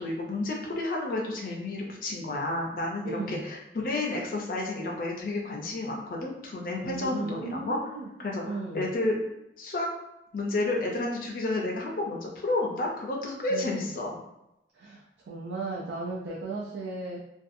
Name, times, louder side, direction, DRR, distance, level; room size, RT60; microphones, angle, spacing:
voice 1, 0.0-7.9 8.2-9.9 10.3-14.2, left 2 dB, 50° left, -1 dB, 0.4 m, -31 dB
voice 2, 3.0-3.4 6.8-8.1 8.4-8.8 13.5-13.9 14.7-17.2, right 3 dB, 80° right, -3 dB, 0.4 m, -36 dB
2.6 x 2.3 x 2.5 m, 0.86 s
head